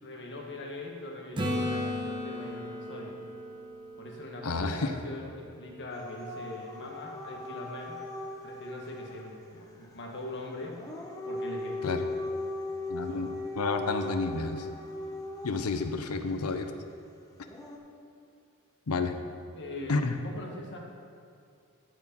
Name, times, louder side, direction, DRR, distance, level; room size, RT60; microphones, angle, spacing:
voice 1, 0.0-3.2 4.0-8.0 8.4-10.8 11.2-11.8 13.0-13.3 19.5-20.8, left 2 dB, 55° left, 0 dB, 1.5 m, -41 dB
Acoustic guitar / Strum, 1.4-5.1 10.0-10.1, left 1 dB, 20° right, 0.9 m, -35 dB
voice 2, 4.4-4.9 11.8-12.0 12.9-14.7 15.4-16.7 18.9-19.2 19.9-20.2, left 3 dB, 80° left, 7 dB, 0.6 m, -30 dB
Dog / Siren, 5.9-9.2 10.6-15.8 17.4-17.8, left 2 dB, 15° left, 0.9 m, -38 dB
14.0 x 4.8 x 5.4 m, 2.5 s
head